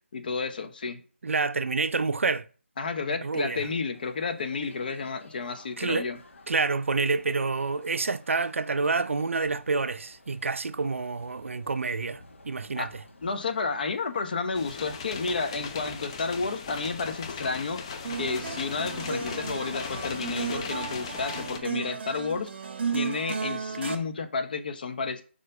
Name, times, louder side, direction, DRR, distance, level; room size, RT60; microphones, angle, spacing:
voice 1, 0.1-1.0 2.8-6.2 12.8-12.9 13.2-17.8 18.2-22.5 22.9-25.2, left 4 dB, 40° left, 1.0 m, -31 dB
voice 2, 1.2-2.5 3.2-3.7 5.8-6.1 6.5-13.0, right 4 dB, 75° right, 0.5 m, -28 dB
sound 1, 3.9-20.3, left 2 dB, 75° left, 1.8 m, -53 dB
sound 2, 14.5-21.6, left 5 dB, 25° left, 0.6 m, -38 dB
sound 3, 18.0-24.0, right 5 dB, 55° right, 1.1 m, -34 dB
5.0 x 4.4 x 5.4 m
figure-of-eight pair, 165°, 7 cm